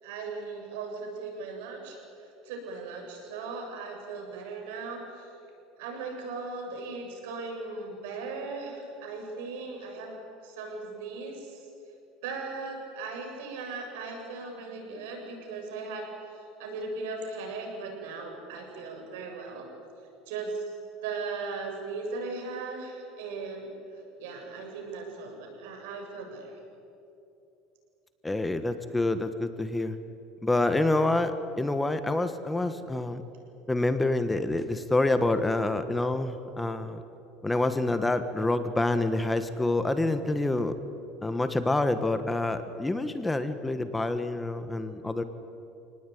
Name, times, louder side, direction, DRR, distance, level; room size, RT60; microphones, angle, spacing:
voice 1, 0.0-2.0 2.5-5.2 5.8-11.7 12.2-16.1 16.6-19.7 20.3-20.6 21.0-23.7 24.2-26.6, right 4 dB, 85° right, 2 dB, 7.3 m, -38 dB
voice 2, 28.2-30.0 30.4-33.2 33.7-37.0 37.4-40.7 41.2-45.2, left 2 dB, 10° left, 10 dB, 1.4 m, -27 dB
27.5 x 19.0 x 9.4 m, 2.8 s
supercardioid pair, 130°, 0 cm